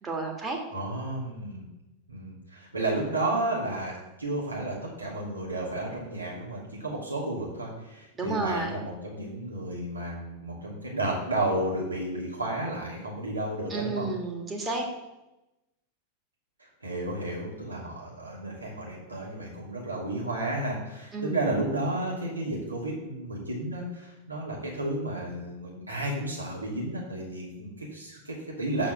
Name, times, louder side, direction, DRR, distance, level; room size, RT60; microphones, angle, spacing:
voice 1, 0.0-0.6 8.2-8.8 13.7-14.9 21.1-21.4, right 3 dB, 20° right, 1 dB, 1.8 m, -31 dB
voice 2, 0.7-1.7 2.1-14.1 16.6-28.9, right 1 dB, 80° right, -4 dB, 2.7 m, -32 dB
7.0 x 5.1 x 6.7 m, 0.97 s
figure-of-eight pair, 90°, 0 cm